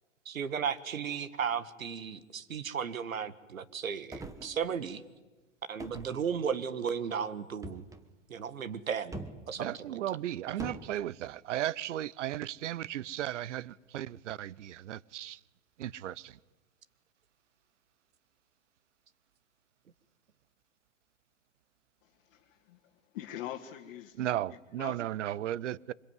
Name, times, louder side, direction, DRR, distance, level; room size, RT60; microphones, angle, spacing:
voice 1, 0.2-5.0 5.7-7.8 8.3-9.2 9.5-10.0, right 7 dB, 80° right, 1.7 m, -35 dB
sound 1, 4.1-5.0 5.8-6.8 7.6-8.1 9.1-9.5 10.6-10.9, right 2 dB, 10° right, 1.4 m, -44 dB
voice 2, 9.6-15.4 15.8-16.4 24.2-25.9, right 12 dB, 60° right, 0.8 m, -35 dB
voice 3, 22.0-22.8 23.1-24.2 24.5-25.0, left 12 dB, 45° left, 2.1 m, -44 dB
25.0 x 21.5 x 9.6 m
hypercardioid pair, 125°, 40 cm